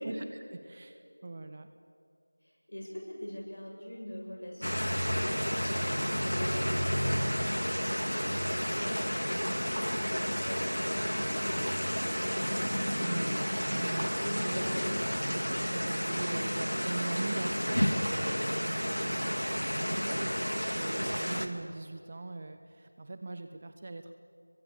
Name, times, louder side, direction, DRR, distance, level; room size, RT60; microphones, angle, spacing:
voice 1, 0.0-1.7 13.0-13.3 13.7-14.7 15.3-20.3 20.6-24.1, right 2 dB, 20° right, 8 dB, 0.5 m, -41 dB
voice 2, 2.4-7.8 8.2-12.7 14.2-14.9 20.0-20.1, equal, 45° left, -2 dB, 7.8 m, -44 dB
sound 1, 4.6-21.5, equal, 85° left, 2.3 m, -31 dB
28.5 x 23.0 x 6.9 m, 2.4 s
figure-of-eight pair, 175°, 0 cm